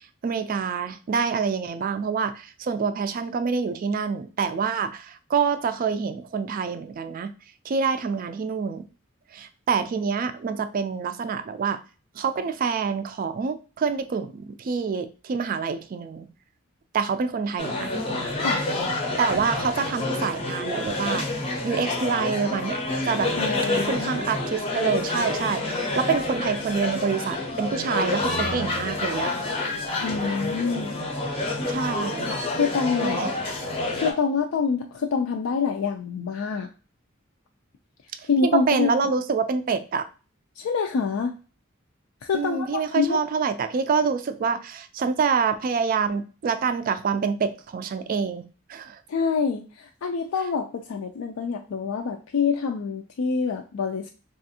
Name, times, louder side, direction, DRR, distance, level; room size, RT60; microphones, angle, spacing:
voice 1, 0.2-7.3 7.7-8.8 9.3-11.8 12.2-16.3 16.9-17.9 19.2-21.3 21.6-22.8 23.1-23.3 23.9-29.3 31.7-32.4 33.0-33.3 38.4-40.0 42.3-48.4 48.7-49.0, right 5 dB, 45° right, 10 dB, 0.3 m, -26 dB
sound 1, 17.6-34.1, left 2 dB, 30° left, 0.6 m, -28 dB
voice 2, 23.4-24.3 30.0-31.0 32.5-33.3 33.9-36.7 38.3-38.9 40.6-41.3 42.2-43.2 49.1-54.1, left 5 dB, 90° left, 3 dB, 0.4 m, -26 dB
3.4 x 2.4 x 2.7 m, 0.34 s
head